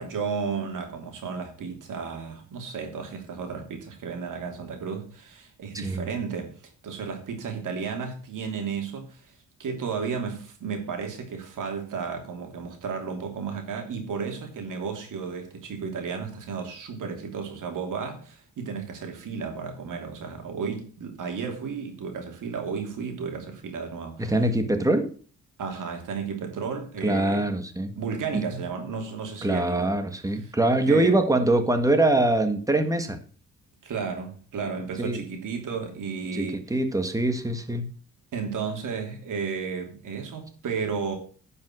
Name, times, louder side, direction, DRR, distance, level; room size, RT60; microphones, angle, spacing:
voice 1, 0.0-6.5 6.8-9.3 9.6-24.3 25.6-27.5 28.0-29.9 30.4-30.5 30.9-31.2 33.8-36.7 38.3-41.2, right 5 dB, 70° right, 3.1 m, -33 dB
voice 2, 24.2-25.1 27.0-28.0 28.3-28.4 29.4-33.2 35.0-35.2 36.3-37.9, right 2 dB, 10° right, 1.6 m, -23 dB
10.5 x 5.7 x 6.2 m
cardioid pair, 125°, 32 cm